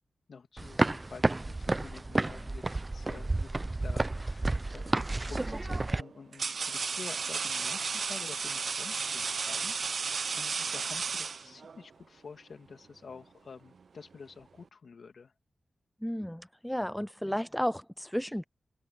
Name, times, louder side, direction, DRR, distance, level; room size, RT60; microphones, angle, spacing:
voice 1, 0.3-15.3 17.2-17.4, left 5 dB, 70° left, 2.7 m, -49 dB
sound 1, 0.6-6.0, right 2 dB, 25° right, 0.7 m, -31 dB
sound 2, 4.8-5.1 5.9-11.8, right 5 dB, 70° right, 0.3 m, -34 dB
voice 2, 16.0-18.4, equal, 5° left, 0.4 m, -33 dB
wide cardioid pair, 80°, 0 cm